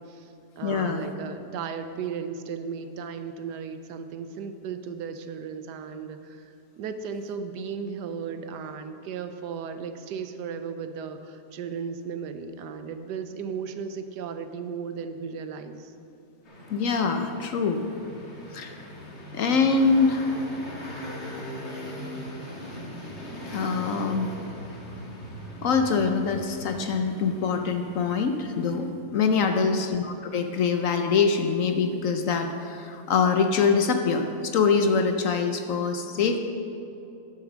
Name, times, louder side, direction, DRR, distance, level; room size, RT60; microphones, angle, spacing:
voice 1, 0.0-15.9 29.4-29.8, right 6 dB, 85° right, 9 dB, 1.3 m, -36 dB
voice 2, 0.6-1.1 16.7-17.9 18.5-18.9 19.3-20.3 23.5-24.3 25.6-36.4, left 5 dB, 65° left, 6 dB, 0.9 m, -24 dB
sound 1, 16.4-28.9, equal, 40° left, 2.0 m, -40 dB
11.0 x 6.7 x 6.2 m, 2.8 s
omnidirectional pair, 1.8 m